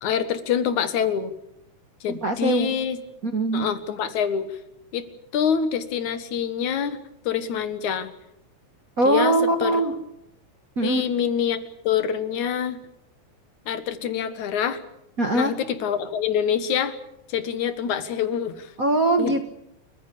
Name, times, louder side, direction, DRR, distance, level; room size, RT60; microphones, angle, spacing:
voice 1, 0.0-1.3 2.0-3.0 3.5-4.5 4.9-5.0 5.3-7.0 7.3-8.1 9.0-9.4 9.6-9.8 10.8-12.8 13.7-14.8 15.3-17.0 17.3-18.7 19.2-19.3, left 8 dB, 75° left, 11 dB, 2.8 m, -25 dB
voice 2, 2.1-2.7 3.2-3.7 9.0-9.9 10.8-11.0 15.2-15.5 18.8-19.5, right 2 dB, 40° right, 6 dB, 1.3 m, -22 dB
29.5 x 15.0 x 8.4 m, 0.80 s
omnidirectional pair, 3.5 m